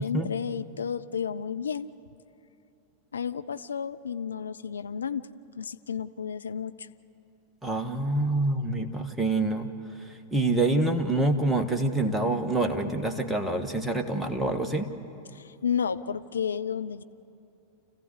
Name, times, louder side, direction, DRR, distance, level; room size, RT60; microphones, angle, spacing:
voice 1, 0.0-1.9 3.1-5.3 5.6-6.9 15.3-17.0, left 7 dB, 70° left, 10 dB, 0.6 m, -32 dB
voice 2, 7.6-9.7 10.1-14.9, right 2 dB, 5° right, 4 dB, 1.5 m, -26 dB
29.5 x 15.0 x 8.1 m, 2.8 s
figure-of-eight pair, 90°, 0 cm